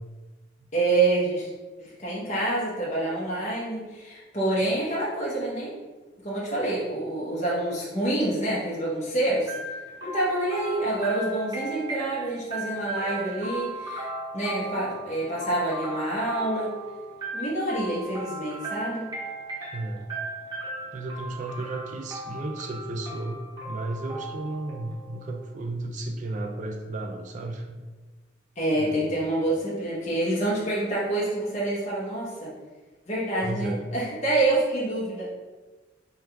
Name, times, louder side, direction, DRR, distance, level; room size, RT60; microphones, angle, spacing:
voice 1, 0.7-1.5 1.8-5.7 6.2-9.5 10.0-14.1 14.3-16.7 17.3-19.0 28.6-32.5 33.1-35.3, right 2 dB, 40° left, -6 dB, 0.9 m, -27 dB
sound 1, 9.5-25.3, right 2 dB, 20° right, 0.8 m, -37 dB
voice 2, 19.7-20.1 20.9-27.8 28.8-29.3 33.4-33.8, right 2 dB, 40° right, 3 dB, 0.3 m, -34 dB
3.4 x 2.4 x 4.4 m, 1.3 s
head